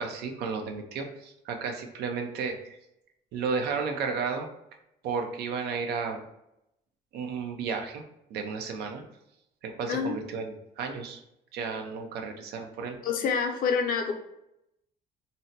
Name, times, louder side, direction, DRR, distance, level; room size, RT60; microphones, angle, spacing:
voice 1, 0.0-2.6 3.3-4.5 5.0-6.2 7.1-8.0 8.3-9.0 9.6-11.2 11.5-13.0, right 5 dB, 75° right, 4 dB, 0.5 m, -33 dB
voice 2, 13.0-14.1, left 6 dB, 55° left, 4 dB, 0.6 m, -27 dB
2.6 x 2.1 x 3.9 m, 0.82 s
cardioid pair, 110°, 17 cm